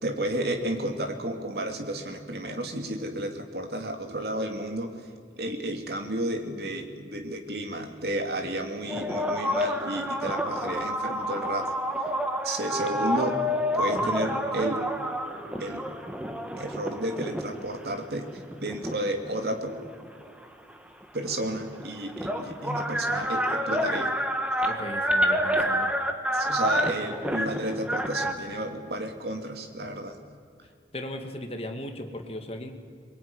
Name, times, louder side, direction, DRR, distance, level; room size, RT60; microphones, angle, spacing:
voice 1, 0.0-5.0 5.4-11.7 12.4-13.4 13.7-14.8 15.6-15.9 16.6-19.7 21.1-24.1 26.3-30.2, right 1 dB, 65° right, 4 dB, 2.9 m, -32 dB
sound 1, 8.9-17.7 18.4-20.1 21.3-21.4 21.5-28.3, equal, 5° right, 1.5 m, -28 dB
voice 2, 12.9-13.3 13.9-14.2 24.7-25.9 30.9-32.7, left 1 dB, 35° left, 5 dB, 2.2 m, -37 dB
23.0 x 22.0 x 9.8 m, 2.3 s
head